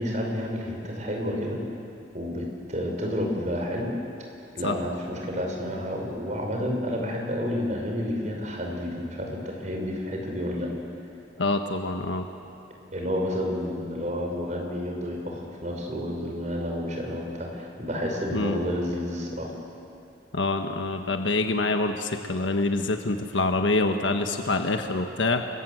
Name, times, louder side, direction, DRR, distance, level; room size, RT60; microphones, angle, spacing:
voice 1, 0.0-1.6 2.1-3.9 4.5-10.7 12.9-19.5, equal, 40° right, 0 dB, 5.5 m, -30 dB
voice 2, 11.4-12.3 18.3-18.6 20.3-25.5, left 2 dB, 85° left, 5 dB, 1.4 m, -26 dB
29.5 x 21.5 x 8.1 m, 2.6 s
head